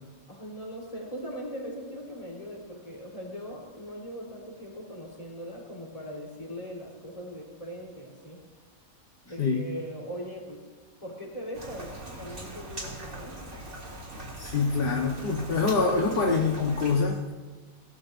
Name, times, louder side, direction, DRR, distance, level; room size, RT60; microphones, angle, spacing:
voice 1, 0.3-8.4 9.2-10.6 11.0-13.4 15.9-16.2, equal, 25° left, -4 dB, 3.9 m, -40 dB
Rain, 11.5-17.0, right 1 dB, 50° right, 2.9 m, -41 dB
voice 2, 14.4-17.2, left 4 dB, 40° left, 0 dB, 1.4 m, -25 dB
22.5 x 17.5 x 2.6 m, 1.3 s
omnidirectional pair, 1.5 m